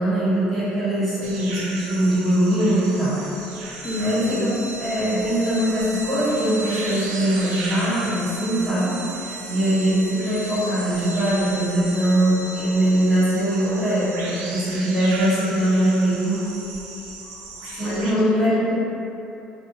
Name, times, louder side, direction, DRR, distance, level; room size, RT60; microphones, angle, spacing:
voice 1, 0.0-3.2 4.0-4.5 4.8-16.4 17.6-18.6, right 1 dB, 5° left, -14 dB, 1.3 m, -22 dB
sound 1, 1.2-18.1, right 3 dB, 80° right, 0.4 m, -37 dB
voice 2, 3.8-4.5 17.8-18.7, left 2 dB, 25° left, -7 dB, 0.6 m, -26 dB
sound 2, 3.8-15.9, right 1 dB, 45° right, 0.7 m, -38 dB
2.5 x 2.1 x 2.6 m, 2.9 s
cardioid pair, 110°, 3 cm